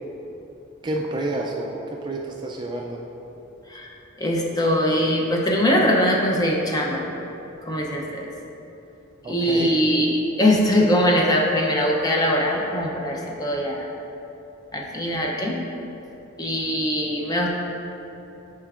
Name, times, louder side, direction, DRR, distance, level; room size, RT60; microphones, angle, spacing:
voice 1, 0.8-3.0 9.2-9.7, right 2 dB, 20° right, 0 dB, 0.3 m, -29 dB
voice 2, 4.2-7.0 7.6-8.3 9.3-13.9 14.7-15.6 16.4-17.5, equal, 20° left, -1 dB, 0.6 m, -21 dB
9.0 x 4.4 x 2.4 m, 3.0 s
head